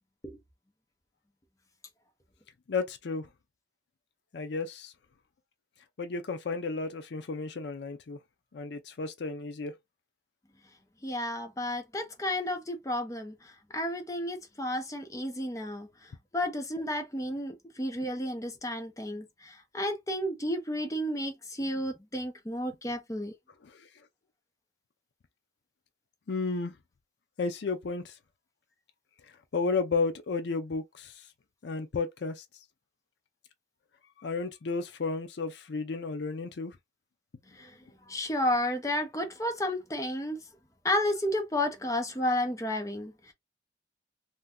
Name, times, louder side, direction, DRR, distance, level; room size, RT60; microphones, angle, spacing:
voice 1, 2.7-3.3 4.3-4.9 6.0-8.2 8.5-9.7 23.6-23.8 26.3-26.7 27.4-28.1 29.5-31.1 31.6-32.4 34.2-36.7, left 4 dB, 70° left, 0.5 m, -32 dB
voice 2, 11.0-13.3 13.7-15.9 16.3-23.3 37.6-37.7 38.1-40.4 40.8-43.3, left 1 dB, 15° left, 0.6 m, -32 dB
2.6 x 2.2 x 3.5 m
head